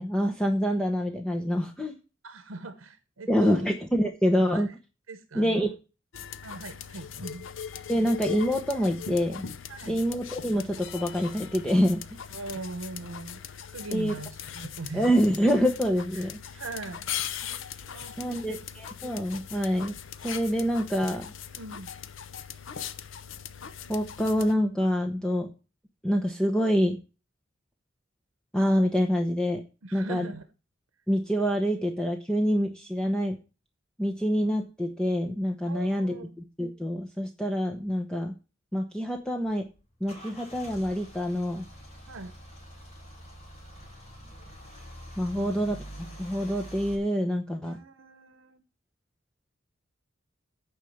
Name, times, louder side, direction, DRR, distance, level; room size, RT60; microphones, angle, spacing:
voice 1, 0.0-2.0 3.3-4.7 5.3-5.7 7.9-9.4 9.9-12.0 13.9-14.1 14.9-16.4 18.2-19.9 20.2-21.3 23.9-25.5 26.0-27.0 28.5-29.6 29.9-30.3 31.1-33.4 34.0-36.1 36.6-38.3 38.7-39.6 40.0-41.6 45.2-45.8 46.2-47.8, equal, 5° left, 2 dB, 0.9 m, -26 dB
voice 2, 2.2-3.7 4.5-4.7 5.1-5.7 6.4-7.5 9.7-10.0 12.3-15.2 16.1-16.3 16.5-18.6 21.5-21.9 29.8-30.5 35.6-36.3 42.1-42.4 45.3-45.5 47.6-48.6, right 3 dB, 75° right, 10 dB, 0.9 m, -41 dB
sound 1, 6.1-24.5, left 8 dB, 70° left, 0.7 m, -40 dB
Car / Engine starting / Idling, 39.1-46.9, equal, 35° left, 3.1 m, -46 dB
9.0 x 5.0 x 7.8 m, 0.32 s
head